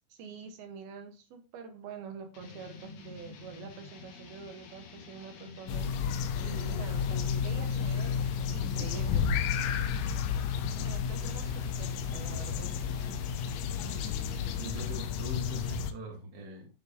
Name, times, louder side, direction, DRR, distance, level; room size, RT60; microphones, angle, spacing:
voice 1, 0.1-6.0 6.4-8.2 8.5-9.3 10.8-12.7, right 5 dB, 70° right, 5 dB, 2.4 m, -46 dB
sound 1, 2.3-14.9, left 4 dB, 65° left, 3.5 m, -49 dB
sound 2, 5.7-15.9, left 7 dB, 85° left, 3.5 m, -31 dB
voice 2, 14.6-16.7, right 1 dB, 45° right, -1 dB, 3.3 m, -42 dB
9.6 x 6.7 x 2.8 m, 0.29 s
omnidirectional pair, 5.8 m